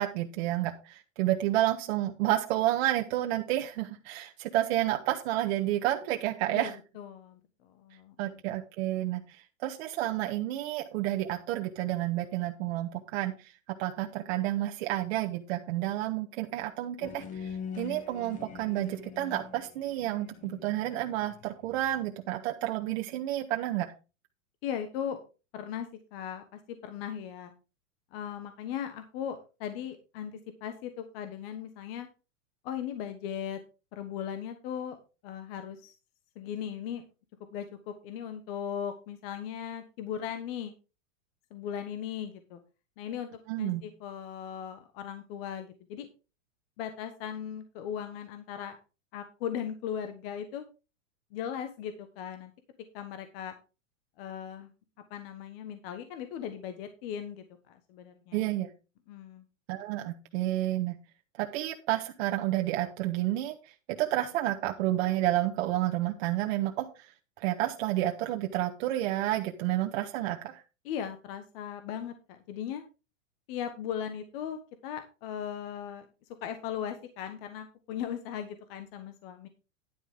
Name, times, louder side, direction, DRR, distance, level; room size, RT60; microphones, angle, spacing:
voice 1, 0.0-6.7 8.2-13.5 13.8-23.9 43.5-43.8 58.3-58.7 59.7-61.0 61.4-63.5 63.9-66.9 67.4-70.6, right 14 dB, 55° right, 3 dB, 1.2 m, -30 dB
voice 2, 6.5-8.4 24.6-25.2 25.5-27.5 28.1-32.1 32.6-33.6 33.9-35.0 35.2-35.9 36.3-37.0 37.5-40.7 41.5-42.6 43.0-43.3 43.6-46.1 46.8-48.8 49.1-50.6 51.3-52.5 52.9-53.5 54.2-54.7 55.1-58.5 59.1-59.4 70.8-72.8 73.5-76.1 76.4-79.5, left 9 dB, 50° left, 8 dB, 1.4 m, -38 dB
sound 1, 17.0-21.9, left 7 dB, 20° left, 0.8 m, -43 dB
10.5 x 9.2 x 3.6 m, 0.31 s
supercardioid pair, 150°, 39 cm